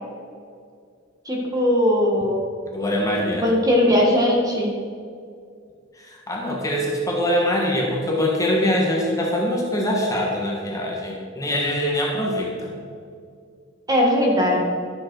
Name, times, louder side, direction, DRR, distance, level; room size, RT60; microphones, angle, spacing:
voice 1, 1.2-2.4 3.2-4.7 13.9-14.7, left 1 dB, 20° right, -1 dB, 1.7 m, -19 dB
voice 2, 2.7-3.5 5.9-12.7, left 1 dB, 15° left, -2 dB, 1.5 m, -23 dB
12.5 x 7.5 x 4.6 m, 2.2 s
head